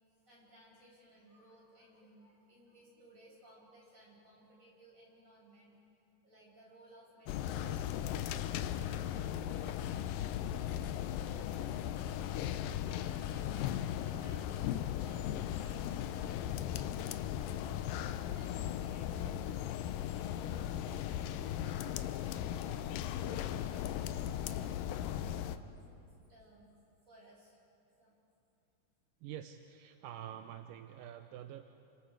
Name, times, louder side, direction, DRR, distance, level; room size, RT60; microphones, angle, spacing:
voice 1, 0.2-5.8 6.2-21.0 21.5-24.8 25.2-26.0 26.3-26.8 27.1-27.6 28.0-28.1, equal, 20° right, -5 dB, 7.1 m, -60 dB
sound 1, 7.3-25.6, left 11 dB, 80° left, 2.1 m, -37 dB
voice 2, 29.2-31.6, right 10 dB, 80° right, 7 dB, 2.0 m, -47 dB
30.0 x 27.0 x 4.8 m, 2.6 s
omnidirectional pair, 4.6 m